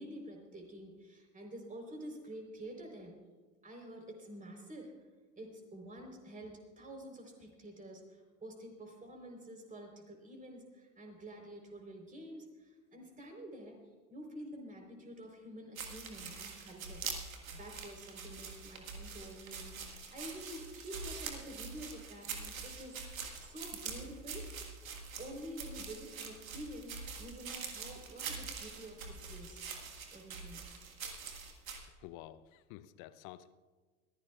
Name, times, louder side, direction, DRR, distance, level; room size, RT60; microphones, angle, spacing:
voice 1, 0.0-3.1 3.6-4.9 5.3-13.8 14.1-24.7 25.2-29.6 29.9-30.6, right 1 dB, 20° right, 2 dB, 3.9 m, -49 dB
sound 1, 15.8-31.8, right 5 dB, 80° right, 1.7 m, -44 dB
voice 2, 32.0-33.5, left 14 dB, 50° left, 14 dB, 0.8 m, -50 dB
22.0 x 15.0 x 2.4 m, 1.3 s
figure-of-eight pair, 75°, 41 cm